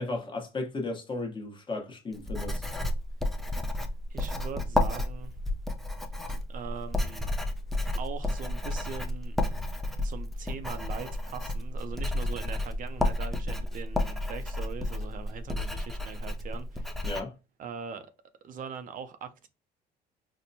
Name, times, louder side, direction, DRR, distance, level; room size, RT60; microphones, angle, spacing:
voice 1, 0.0-2.6 17.0-17.3, left 2 dB, 30° left, 1.0 m, -35 dB
Writing, 2.1-17.2, left 1 dB, ahead, 0.5 m, -31 dB
voice 2, 4.1-5.3 6.5-7.3 8.0-9.4 10.0-17.1 17.6-18.1 18.4-19.5, right 6 dB, 55° right, 0.5 m, -41 dB
4.3 x 2.1 x 2.7 m
cardioid pair, 110°, 17 cm